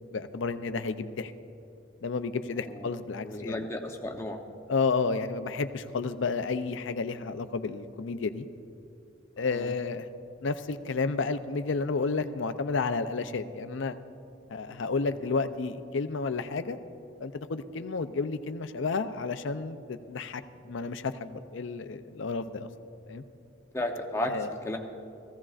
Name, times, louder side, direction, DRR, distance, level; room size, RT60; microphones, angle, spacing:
voice 1, 0.1-1.3 2.0-3.6 4.7-8.4 9.4-10.1 10.4-14.0 14.5-16.8 17.2-22.7 23.1-23.2 24.3-24.5, left 4 dB, 65° left, 10 dB, 0.5 m, -31 dB
voice 2, 3.2-4.4 9.4-9.7 14.7-14.8 23.7-24.8, left 1 dB, 15° left, 2 dB, 0.8 m, -34 dB
18.0 x 15.0 x 2.5 m, 2.6 s
head